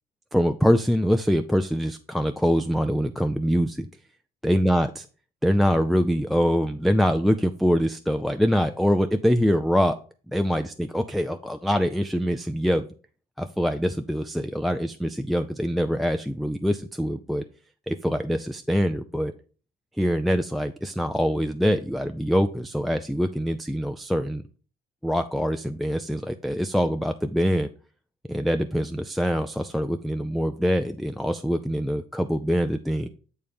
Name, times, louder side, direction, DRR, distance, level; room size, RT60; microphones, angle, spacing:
voice 1, 0.3-3.9 4.4-4.9 5.4-10.0 10.3-12.9 13.4-17.4 17.9-19.3 20.0-24.4 25.0-27.7 28.3-33.1, equal, ahead, 7 dB, 0.4 m, -24 dB
8.6 x 3.3 x 5.3 m, 0.39 s
cardioid pair, 110°, 17 cm